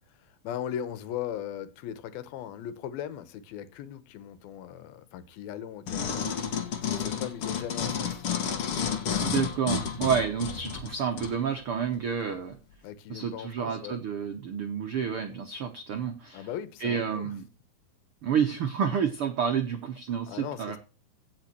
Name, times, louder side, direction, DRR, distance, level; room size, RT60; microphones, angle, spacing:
voice 1, 0.2-6.3 6.8-8.3 12.8-14.0 16.3-17.4 20.3-20.8, left 10 dB, 85° left, 2.8 m, -38 dB
sound 1, 5.9-11.3 11.9-12.0, left 7 dB, 55° left, 1.7 m, -31 dB
voice 2, 9.2-12.6 13.1-16.5 16.8-17.5 18.2-20.8, right 7 dB, 80° right, 1.2 m, -29 dB
16.5 x 5.8 x 4.4 m
omnidirectional pair, 4.2 m